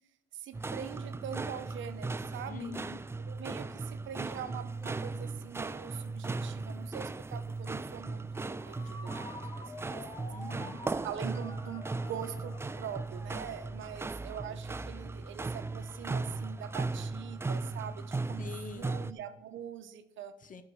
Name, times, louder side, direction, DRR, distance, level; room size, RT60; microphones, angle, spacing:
voice 1, 0.3-2.7 3.3-10.0 11.0-18.5 18.7-20.3, right 9 dB, 75° right, 10 dB, 0.8 m, -43 dB
sound 1, 0.5-19.1, right 3 dB, 15° right, 0.3 m, -37 dB
voice 2, 2.5-3.0 10.3-10.8 18.4-19.0 20.4-20.6, left 5 dB, 40° left, 12 dB, 0.8 m, -44 dB
Ringtone, 7.6-15.1, left 1 dB, 20° left, 1.2 m, -50 dB
11.0 x 4.7 x 6.2 m, 0.88 s
cardioid pair, 90°, 20 cm